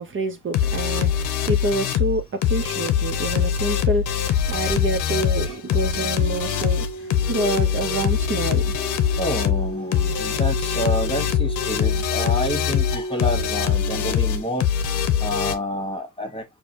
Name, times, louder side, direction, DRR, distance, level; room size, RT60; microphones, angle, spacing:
voice 1, 0.0-8.7, right 2 dB, 40° right, 0.7 m, -27 dB
sound 1, 0.5-15.6, left 9 dB, 85° left, 0.7 m, -23 dB
sound 2, 5.4-14.5, right 1 dB, 45° left, 0.8 m, -34 dB
voice 2, 9.2-14.6 15.2-16.4, equal, 15° left, 1.4 m, -28 dB
4.7 x 2.2 x 2.7 m
cardioid pair, 90°, 30 cm